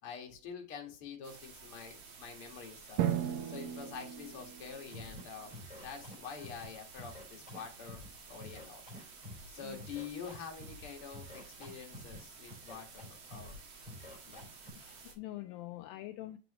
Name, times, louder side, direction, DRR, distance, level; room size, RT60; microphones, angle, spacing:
voice 1, 0.0-3.1 3.4-8.8 9.5-13.6 14.3-14.5, left 6 dB, 45° left, 1 dB, 2.1 m, -47 dB
sound 1, 1.2-15.1, right 5 dB, 50° right, 2.1 m, -53 dB
Drum, 3.0-5.5, right 10 dB, 75° right, 2.2 m, -36 dB
Scratching (performance technique), 4.9-5.2 5.5-6.6 6.9-8.1 8.4-9.5 9.8-10.8 11.1-12.2 12.5-13.1 13.3-13.6 13.9-14.7, left 1 dB, ahead, 3.8 m, -49 dB
voice 2, 14.7-16.4, left 15 dB, 80° left, 7 dB, 2.1 m, -45 dB
7.6 x 6.1 x 3.0 m, 0.32 s
omnidirectional pair, 4.4 m